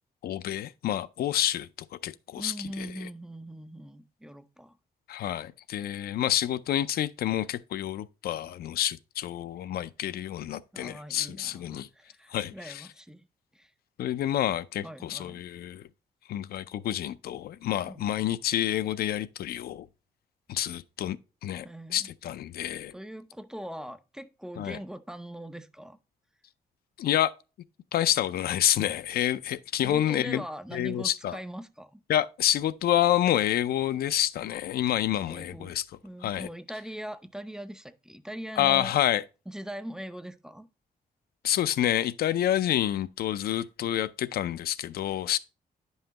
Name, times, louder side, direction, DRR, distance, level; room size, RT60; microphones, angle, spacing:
voice 1, 0.2-3.1 5.1-11.9 12.3-12.9 14.0-15.8 16.3-19.9 20.5-21.2 21.4-22.9 24.6-24.8 27.0-27.3 27.9-30.4 30.7-31.4 32.1-35.8 36.2-36.5 38.6-39.2 41.4-45.4, left 12 dB, 85° left, 0.5 m, -28 dB
voice 2, 2.4-4.8 10.7-13.3 13.5-13.7 14.8-15.5 17.9-18.1 21.6-22.1 22.9-26.0 29.8-32.0 35.3-35.8 36.0-38.9 39.5-40.7, equal, 5° right, 0.4 m, -41 dB
10.0 x 5.5 x 2.9 m
wide cardioid pair, 165°, 16 cm